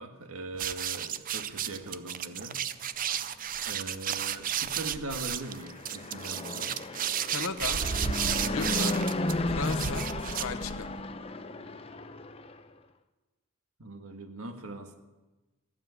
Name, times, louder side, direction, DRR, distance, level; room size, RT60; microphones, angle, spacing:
voice 1, 0.0-2.6 3.6-6.7 13.8-15.0, right 2 dB, 85° right, 6 dB, 1.6 m, -41 dB
sound 1, 0.5-11.0, right 9 dB, 40° right, 0.5 m, -33 dB
Fixed-wing aircraft airplane, 5.2-12.6, left 2 dB, 25° left, 0.7 m, -34 dB
voice 2, 7.3-7.8 8.4-9.0 9.5-10.1 10.4-10.9, left 4 dB, 70° left, 8 dB, 0.8 m, -35 dB
14.5 x 7.4 x 9.5 m, 1.1 s
head